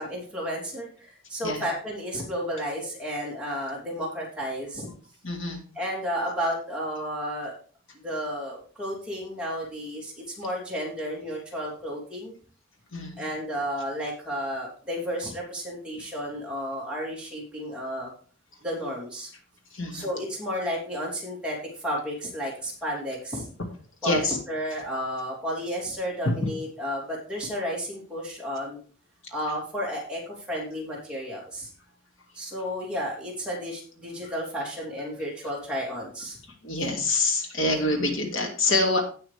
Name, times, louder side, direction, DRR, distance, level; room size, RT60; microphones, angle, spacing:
voice 1, 0.0-4.9 5.7-7.5 8.0-12.4 13.2-18.1 18.6-19.3 19.9-23.5 24.0-28.8 29.3-31.7 32.3-36.4, equal, 5° right, -5 dB, 3.2 m, -32 dB
voice 2, 5.2-5.6 12.9-13.2 19.7-20.1 24.0-24.4 36.6-39.0, left 2 dB, 70° left, 2 dB, 2.4 m, -26 dB
17.0 x 5.9 x 3.5 m, 0.41 s
head